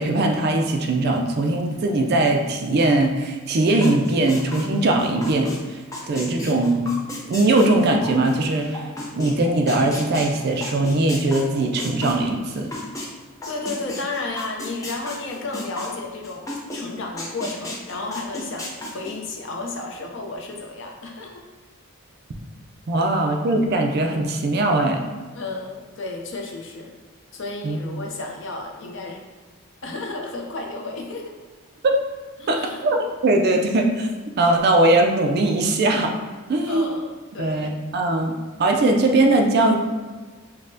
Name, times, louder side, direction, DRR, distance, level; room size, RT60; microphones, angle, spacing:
voice 1, 0.0-5.5 6.1-7.0 7.3-8.8 9.2-12.7 22.9-25.0 27.6-27.8 31.8-32.0 32.5-33.0 33.2-34.1 34.4-36.1 36.5-36.9 37.4-38.3 38.6-39.7, right 2 dB, 45° right, 3 dB, 0.3 m, -20 dB
sound 1, 3.8-5.6 5.9-13.1 13.4-16.8 17.2-19.1, left 1 dB, 15° left, 0.5 m, -33 dB
voice 2, 13.5-16.5 16.7-21.4 23.0-23.1 25.3-26.9 27.3-29.2 29.8-31.4 32.4-32.8 36.7-37.7, left 3 dB, 60° left, 1 dB, 0.5 m, -32 dB
5.3 x 2.1 x 2.6 m, 1.4 s
head